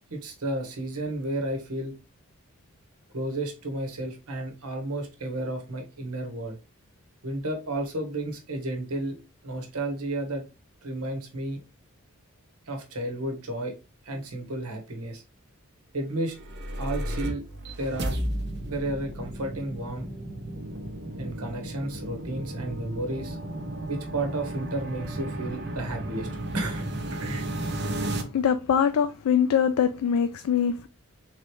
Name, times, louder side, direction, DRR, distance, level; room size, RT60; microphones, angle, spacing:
voice 1, 0.1-1.9 3.1-6.6 7.2-9.2 9.4-10.4 10.8-11.6 12.7-13.7 14.0-15.2 15.9-16.3 16.8-17.4 17.8-18.2 18.6-20.1 21.2-23.4 23.9-26.3 26.5-26.8 27.1-27.5, right 1 dB, 85° right, 1.2 m, -32 dB
sound 1, 16.2-28.2, right 1 dB, 50° right, 0.7 m, -34 dB
voice 2, 28.3-30.9, left 7 dB, 80° left, 0.3 m, -23 dB
3.7 x 3.1 x 3.1 m
head